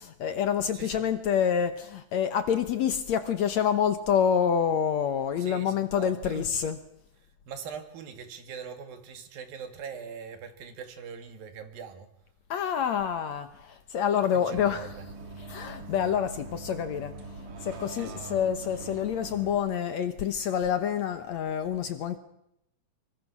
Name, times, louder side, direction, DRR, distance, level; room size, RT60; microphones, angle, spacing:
voice 1, 0.0-6.8 12.5-15.0 15.4-22.2, left 8 dB, 65° left, 2.0 m, -27 dB
voice 2, 0.7-1.1 5.4-6.5 7.5-12.1 14.2-14.9 17.9-18.4, right 6 dB, 80° right, 3.9 m, -42 dB
Bus, 14.5-19.6, right 2 dB, 60° right, 3.7 m, -42 dB
25.0 x 23.5 x 6.1 m
omnidirectional pair, 4.1 m